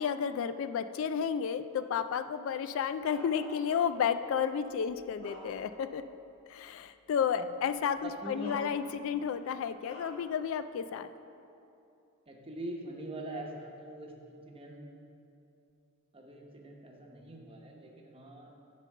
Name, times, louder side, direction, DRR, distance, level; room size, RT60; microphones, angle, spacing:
voice 1, 0.0-6.0 6.5-11.1, left 7 dB, 65° left, 12 dB, 0.3 m, -32 dB
Bark, 3.0-4.1 4.7-6.0 6.4-6.6 7.7-7.8 8.4-9.2 9.8-10.3, left 1 dB, 30° left, 1.7 m, -49 dB
voice 2, 8.0-8.5 12.3-14.9 16.1-18.5, right 1 dB, 25° right, 0 dB, 0.9 m, -43 dB
10.0 x 3.8 x 6.5 m, 2.7 s
head